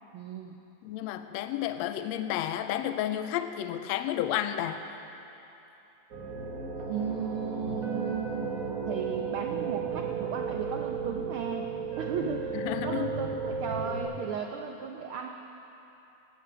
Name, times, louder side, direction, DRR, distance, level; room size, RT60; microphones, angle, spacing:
voice 1, 0.1-0.6 6.8-8.5 8.9-15.3, right 6 dB, 80° right, 3 dB, 1.2 m, -35 dB
voice 2, 0.8-4.8 12.5-13.2, left 11 dB, 80° left, 9 dB, 1.6 m, -31 dB
sound 1, 6.1-14.0, right 5 dB, 40° right, 1.4 m, -34 dB
18.5 x 10.5 x 6.8 m, 2.9 s
omnidirectional pair, 3.3 m